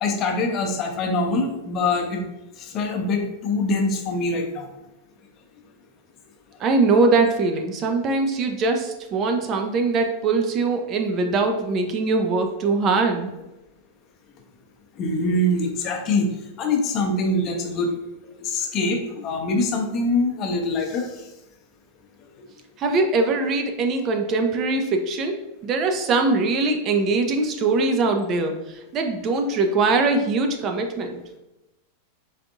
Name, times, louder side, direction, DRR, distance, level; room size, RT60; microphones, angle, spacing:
voice 1, 0.0-2.2 2.6-4.7 15.0-16.3 16.6-17.9 18.4-21.1, left 2 dB, 35° left, 3 dB, 0.6 m, -24 dB
voice 2, 6.6-13.3 22.8-31.2, right 3 dB, 30° right, 4 dB, 0.4 m, -22 dB
4.0 x 3.3 x 2.5 m, 0.97 s
figure-of-eight pair, 90°, 0 cm